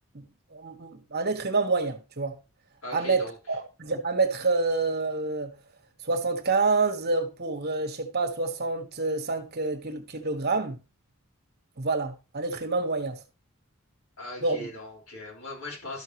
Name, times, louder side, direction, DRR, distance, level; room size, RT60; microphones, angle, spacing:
voice 1, 0.5-2.3 2.9-5.5 6.0-10.8 11.8-13.2 14.4-14.7, right 3 dB, 50° right, 1.4 m, -27 dB
voice 2, 2.8-3.4 14.2-16.0, left 1 dB, 70° left, 4.9 m, -39 dB
12.5 x 6.6 x 3.0 m
head